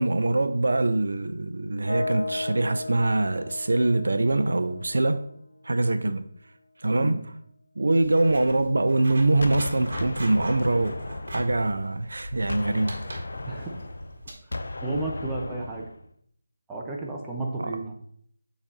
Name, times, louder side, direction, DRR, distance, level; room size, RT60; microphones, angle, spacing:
voice 1, 0.0-5.2 5.6-6.3 6.8-7.2 7.8-11.0 11.3-13.0 17.6-17.7, right 2 dB, 70° right, 0.4 m, -23 dB
sound 1, 1.8-5.8, left 2 dB, 85° left, 1.7 m, -35 dB
Writing, 7.8-14.3, right 1 dB, 55° right, 1.5 m, -42 dB
Gunshot gunfire, 9.4-12.1 12.5-16.0, left 2 dB, 65° left, 0.6 m, -36 dB
voice 2, 13.5-13.8 14.8-15.9 16.7-18.1, right 2 dB, 10° right, 0.8 m, -32 dB
7.1 x 4.0 x 3.9 m
figure-of-eight pair, 160°, 0 cm